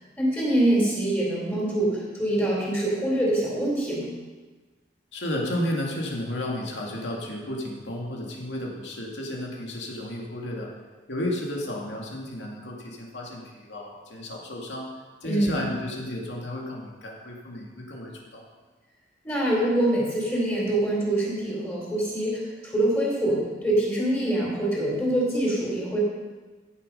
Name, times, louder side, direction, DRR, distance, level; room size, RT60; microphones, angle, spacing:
voice 1, 0.2-4.1 15.2-15.5 19.2-26.0, right 1 dB, 10° left, -5 dB, 3.8 m, -24 dB
voice 2, 5.1-10.8 11.1-14.9 15.2-18.4, left 1 dB, 75° left, -1 dB, 2.2 m, -32 dB
15.5 x 7.0 x 5.4 m, 1.3 s
head